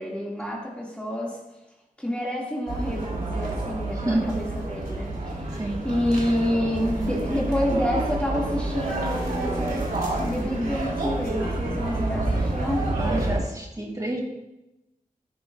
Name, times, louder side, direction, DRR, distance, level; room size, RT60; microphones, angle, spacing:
voice 1, 0.0-1.4 2.0-9.8 10.2-12.9, equal, 10° left, -4 dB, 2.0 m, -28 dB
sound 1, 2.7-13.4, right 2 dB, 85° right, 2.9 m, -28 dB
voice 2, 3.9-4.4 5.6-5.8 13.0-14.2, right 1 dB, 25° right, 0 dB, 2.4 m, -29 dB
13.0 x 10.0 x 2.4 m, 0.96 s
wide cardioid pair, 65°, 14 cm